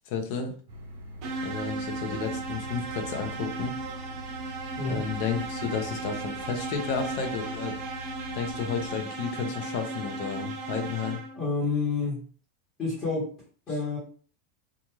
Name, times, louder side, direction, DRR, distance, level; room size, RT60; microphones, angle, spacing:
voice 1, 0.1-0.5 1.4-3.8 4.9-7.7 8.3-11.2, left 6 dB, 50° left, 4 dB, 0.7 m, -32 dB
sound 1, 0.7-9.0, equal, 85° right, 0.7 m, -43 dB
sound 2, 1.2-11.6, right 3 dB, 40° right, 0.6 m, -36 dB
voice 2, 11.3-12.2 12.8-13.3 13.7-14.0, left 3 dB, 20° left, -7 dB, 1.3 m, -28 dB
2.5 x 2.4 x 3.0 m, 0.41 s
supercardioid pair, 160°, 0 cm